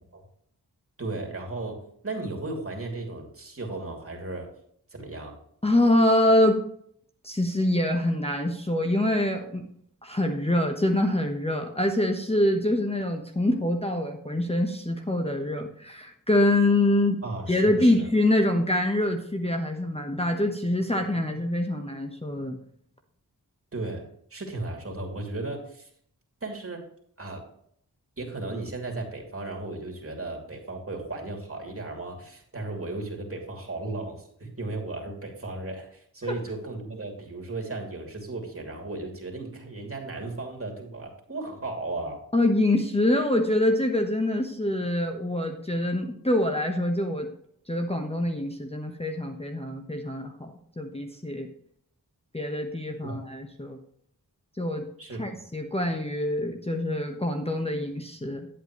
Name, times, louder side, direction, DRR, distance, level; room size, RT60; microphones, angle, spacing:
voice 1, 1.0-4.5 4.9-5.4 17.2-18.1 23.7-25.9 26.4-26.8 27.2-27.4 28.2-42.2 53.0-53.2 55.0-55.2, right 2 dB, 35° right, 1 dB, 2.7 m, -35 dB
voice 2, 5.6-6.6 7.2-9.7 10.0-17.2 17.5-22.6 42.3-47.3 47.7-51.5 52.3-53.8 54.6-54.9 55.2-58.5, left 1 dB, 15° left, 3 dB, 1.1 m, -25 dB
10.0 x 8.2 x 3.1 m, 0.66 s
cardioid pair, 40°, 39 cm